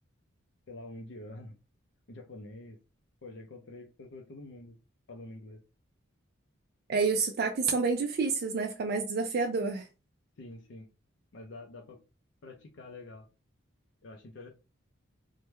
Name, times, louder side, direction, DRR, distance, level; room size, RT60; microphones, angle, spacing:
voice 1, 0.7-1.6 2.1-2.8 3.2-4.8 5.1-5.6 10.4-10.9 11.3-12.0 12.4-13.3 14.0-14.5, left 2 dB, 60° left, 0.5 m, -46 dB
voice 2, 6.9-9.9, right 4 dB, 50° right, 0.3 m, -29 dB
3.2 x 2.1 x 3.1 m
head